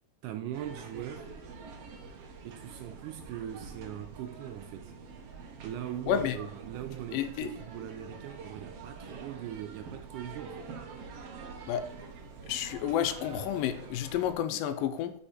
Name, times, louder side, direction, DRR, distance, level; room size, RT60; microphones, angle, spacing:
voice 1, 0.2-1.3 2.4-4.9 5.6-10.7, right 10 dB, 80° right, 1.9 m, -40 dB
sound 1, 0.5-14.3, right 5 dB, 65° right, 1.7 m, -46 dB
voice 2, 6.1-6.4 7.1-7.5 11.7-11.8 12.5-15.1, left 10 dB, 80° left, 2.3 m, -30 dB
6.9 x 5.6 x 4.2 m
omnidirectional pair, 4.0 m